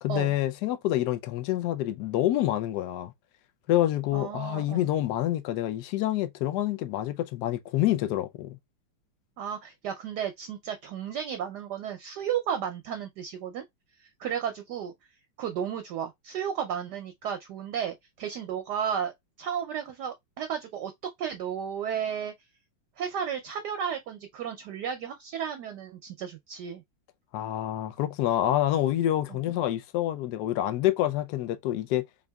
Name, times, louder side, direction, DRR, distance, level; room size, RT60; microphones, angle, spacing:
voice 1, 0.0-3.1 3.7-8.6 27.3-32.0, left 13 dB, 75° left, 0.9 m, -27 dB
voice 2, 4.1-4.9 9.4-13.6 14.0-14.9 15.4-19.1 19.4-20.9 21.2-22.3 23.0-26.8 29.3-29.4, right 8 dB, 70° right, 1.0 m, -33 dB
3.8 x 3.6 x 2.2 m
omnidirectional pair, 2.3 m